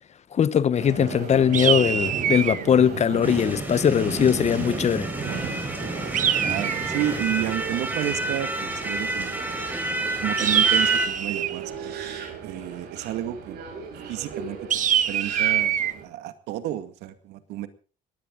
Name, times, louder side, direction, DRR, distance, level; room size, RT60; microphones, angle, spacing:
voice 1, 0.3-5.1, left 8 dB, 40° left, 1.0 m, -21 dB
Subway metro underground, 0.8-16.0, right 6 dB, 70° right, 7.3 m, -37 dB
sound 1, 1.5-2.7 6.1-7.2 10.4-11.6 14.7-15.9, right 9 dB, 50° right, 1.4 m, -24 dB
sound 2, 3.2-11.1, right 1 dB, 10° right, 4.8 m, -29 dB
voice 2, 6.4-9.5 10.2-11.9 12.4-13.6 14.1-17.7, right 13 dB, 90° right, 2.1 m, -31 dB
20.5 x 15.5 x 3.9 m
cardioid pair, 110°, 17 cm